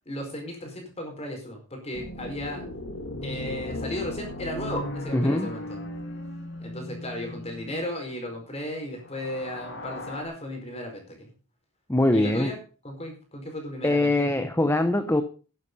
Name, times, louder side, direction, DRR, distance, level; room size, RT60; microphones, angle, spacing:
voice 1, 0.0-2.6 3.2-5.8 6.6-11.3 12.1-12.6 12.8-14.4, left 1 dB, 30° left, 3 dB, 4.8 m, -35 dB
sound 1, 1.9-8.0 9.0-10.2, left 1 dB, 55° left, 2.4 m, -37 dB
voice 2, 5.1-5.5 11.9-12.5 13.8-15.2, left 1 dB, 10° left, 9 dB, 0.8 m, -22 dB
11.0 x 11.0 x 5.4 m, 0.36 s
head